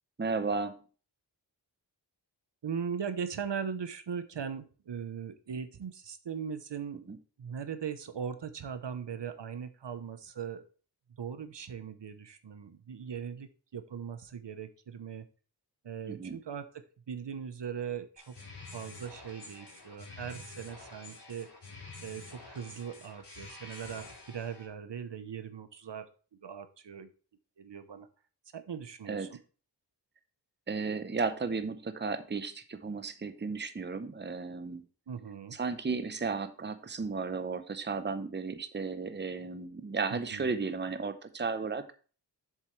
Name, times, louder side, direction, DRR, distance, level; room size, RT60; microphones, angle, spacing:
voice 1, 0.2-0.8 7.1-7.2 16.1-16.4 29.1-29.3 30.7-34.8 35.5-41.9, right 4 dB, 25° right, 10 dB, 0.7 m, -34 dB
voice 2, 2.6-7.1 7.4-10.6 11.2-15.3 15.8-18.4 18.7-21.5 22.0-26.1 26.4-27.1 27.6-28.1 28.5-29.4 35.1-35.6 40.1-40.5, right 7 dB, 70° right, 11 dB, 0.9 m, -39 dB
sound 1, 18.2-24.7, left 3 dB, 65° left, 3.6 m, -48 dB
7.6 x 7.3 x 3.2 m, 0.38 s
wide cardioid pair, 85°, 44 cm